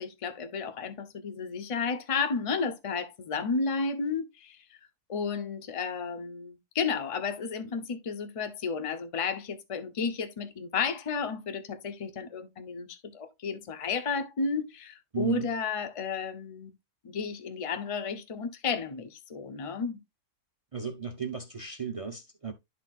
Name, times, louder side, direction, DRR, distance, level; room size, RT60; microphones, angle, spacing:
voice 1, 0.0-4.8 5.1-16.7 17.0-20.0, left 5 dB, 35° left, 0.6 m, -32 dB
voice 2, 15.1-15.5 20.7-22.5, right 7 dB, 50° right, 0.4 m, -34 dB
12.0 x 4.1 x 2.4 m
omnidirectional pair, 1.6 m